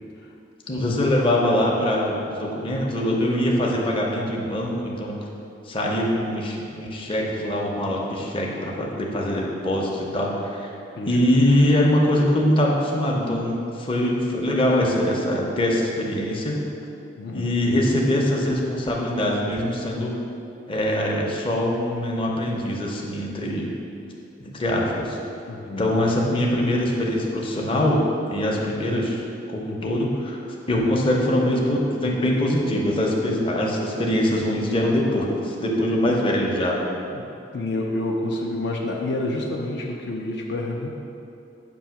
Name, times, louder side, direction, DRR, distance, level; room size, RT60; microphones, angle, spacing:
voice 1, 0.7-5.2 5.7-10.7 11.1-16.6 17.3-20.1 20.7-23.7 24.4-25.2 25.8-28.0 28.3-29.2 29.5-30.4 30.7-36.8, left 1 dB, 30° left, -2 dB, 0.7 m, -23 dB
voice 2, 17.2-17.5 25.5-25.9 37.1-37.2 37.5-40.9, left 2 dB, 65° left, -1 dB, 0.6 m, -28 dB
6.9 x 2.7 x 5.7 m, 2.7 s
head